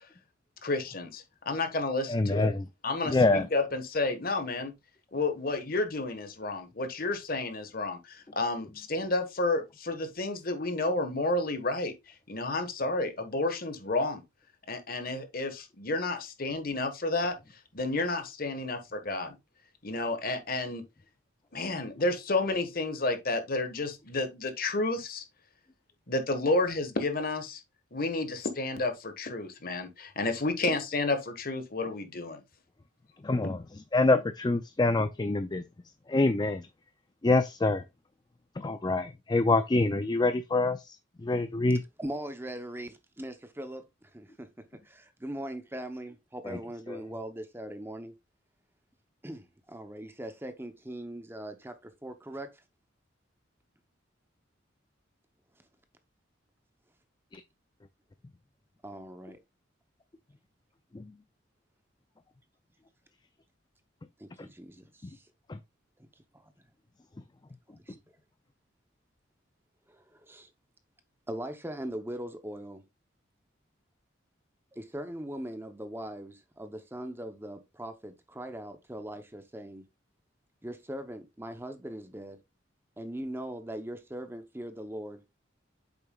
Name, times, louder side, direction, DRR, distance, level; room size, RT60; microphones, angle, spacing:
voice 1, 0.6-2.5 2.8-4.7 5.1-14.2 14.7-17.3 17.7-19.4 19.8-20.8 21.5-25.2 26.1-27.6 27.9-32.4, left 2 dB, 50° left, 1.4 m, -31 dB
voice 2, 2.1-2.6 3.1-3.5 33.2-35.6 36.1-36.7 37.2-37.8 38.6-41.0 41.2-41.8 46.4-46.6 46.9-47.0 57.3-57.4 60.9-61.1 65.5-65.6, left 2 dB, 20° left, 0.4 m, -26 dB
voice 3, 42.0-43.8 44.1-44.5 44.9-48.1 49.2-52.5 58.8-59.4 64.2-64.8 70.3-70.5 71.3-72.8 74.8-79.8 80.6-82.4 83.0-85.2, right 1 dB, 10° right, 0.8 m, -40 dB
8.5 x 6.8 x 2.4 m
head